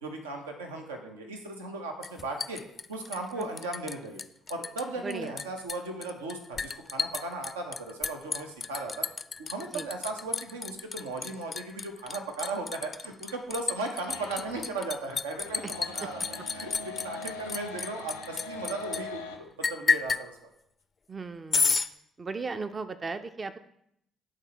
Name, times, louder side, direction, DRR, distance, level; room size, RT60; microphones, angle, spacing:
voice 1, 0.0-2.6 2.9-4.2 4.5-9.1 9.4-16.2 16.5-20.5, right 2 dB, 80° right, 3 dB, 0.7 m, -37 dB
Liquid, 2.0-3.9 4.2-4.8 5.1-19.0 19.6-20.2 21.5-21.9, left 5 dB, 35° left, 0.4 m, -31 dB
voice 2, 5.0-5.3 9.7-9.9 15.6-15.7 16.0-16.1 21.1-21.8 22.2-23.6, right 4 dB, 35° right, 10 dB, 0.5 m, -36 dB
sound 1, 14.1-14.7 15.1-19.4, left 4 dB, 90° left, 0.7 m, -41 dB
8.9 x 3.8 x 4.5 m, 0.75 s
figure-of-eight pair, 45°, 0 cm